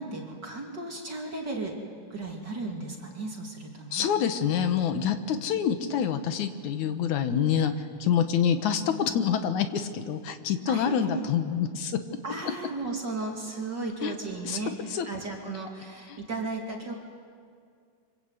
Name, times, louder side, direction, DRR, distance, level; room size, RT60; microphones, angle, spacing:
voice 1, 0.0-1.8 2.1-4.1 10.7-11.3 12.2-16.9, right 3 dB, 35° right, 0 dB, 3.1 m, -35 dB
voice 2, 3.9-7.7 8.0-12.0 14.0-14.1 14.4-14.6 14.9-15.1 16.1-16.2, left 8 dB, 70° left, 8 dB, 2.6 m, -26 dB
26.5 x 25.0 x 8.1 m, 2.2 s
omnidirectional pair, 3.6 m